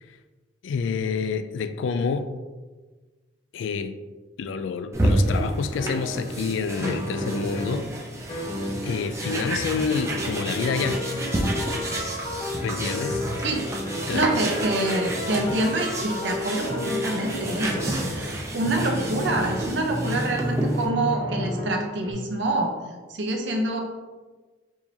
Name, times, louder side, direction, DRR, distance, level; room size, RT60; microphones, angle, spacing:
voice 1, 0.6-2.3 3.5-4.0 4.4-7.9 8.4-8.5 8.8-11.1 11.6-11.7 12.6-13.2 14.1-14.4, left 5 dB, 80° left, 10 dB, 0.3 m, -28 dB
OM-FR-chalkonboard, 4.9-20.9, right 1 dB, 15° right, 0.4 m, -30 dB
sound 1, 5.8-6.5 6.8-7.9 8.3-22.1, left 1 dB, 30° left, 1.0 m, -32 dB
voice 2, 14.1-22.7 23.1-23.8, right 2 dB, 70° right, 2 dB, 0.7 m, -26 dB
4.7 x 2.8 x 2.7 m, 1.3 s
head